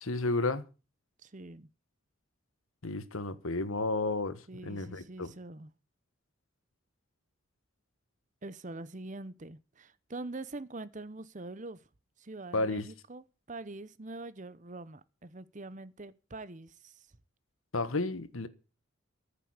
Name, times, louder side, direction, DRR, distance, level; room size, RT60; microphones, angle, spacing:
voice 1, 0.0-0.6 2.8-5.3 12.5-12.9 17.7-18.5, left 2 dB, 75° left, 1.4 m, -32 dB
voice 2, 1.2-1.7 4.5-5.7 8.4-11.8 12.2-17.0, right 2 dB, 35° right, 0.8 m, -44 dB
14.5 x 6.9 x 8.7 m
head